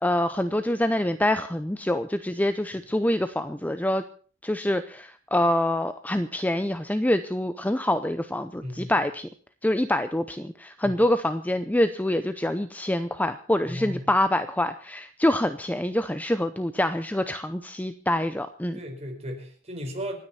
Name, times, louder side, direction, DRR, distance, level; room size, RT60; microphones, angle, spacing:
voice 1, 0.0-4.0 4.4-9.3 9.6-18.8, left 1 dB, 10° left, 10 dB, 0.6 m, -25 dB
voice 2, 8.6-8.9 10.8-11.0 13.7-14.0 18.7-20.2, equal, 30° right, 3 dB, 4.4 m, -35 dB
27.5 x 9.6 x 4.2 m, 0.43 s
head